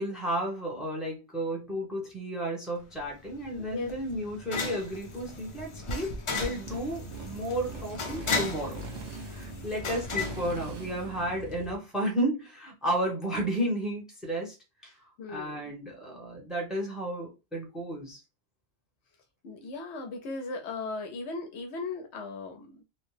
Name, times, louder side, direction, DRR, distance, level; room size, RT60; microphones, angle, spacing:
voice 1, 0.0-8.8 9.3-14.5 14.8-14.9 15.3-18.2, right 1 dB, ahead, -1 dB, 0.8 m, -33 dB
sound 1, 2.9-11.3, left 3 dB, 45° left, 0.4 m, -36 dB
voice 2, 3.6-3.9 15.2-15.6 19.4-22.8, left 3 dB, 75° left, 5 dB, 0.9 m, -37 dB
Motorcycle, 6.7-11.8, right 3 dB, 90° right, 1.0 m, -42 dB
2.8 x 2.1 x 3.2 m, 0.26 s
omnidirectional pair, 1.2 m